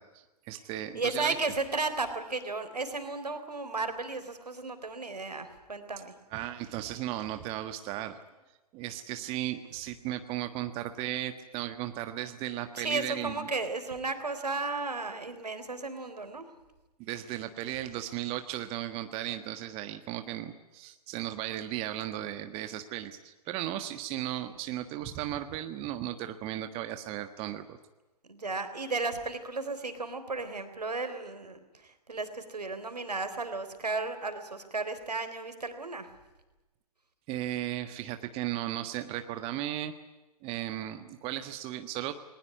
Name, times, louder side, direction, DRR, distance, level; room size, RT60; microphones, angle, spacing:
voice 1, 0.0-1.4 6.3-8.2 8.7-13.5 17.0-27.8 37.3-39.9 40.4-42.1, right 13 dB, 30° right, 9 dB, 1.5 m, -36 dB
voice 2, 0.9-6.1 12.7-16.5 28.3-36.1, right 3 dB, 80° right, 9 dB, 3.8 m, -34 dB
21.0 x 20.0 x 9.6 m, 1.1 s
figure-of-eight pair, 115°, 20 cm